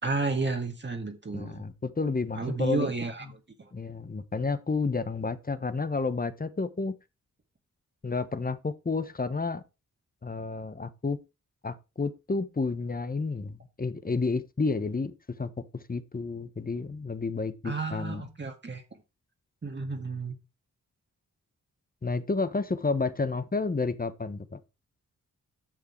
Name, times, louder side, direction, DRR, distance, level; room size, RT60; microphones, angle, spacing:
voice 1, 0.0-1.6 2.4-3.3 3.6-3.7 17.6-18.8 19.6-20.4, right 3 dB, 35° right, 1.8 m, -31 dB
voice 2, 1.3-2.9 3.7-6.9 8.0-9.6 10.2-11.2 11.6-18.2 22.0-24.6, left 4 dB, 25° left, 1.1 m, -31 dB
10.5 x 6.7 x 4.6 m
wide cardioid pair, 100°, 32 cm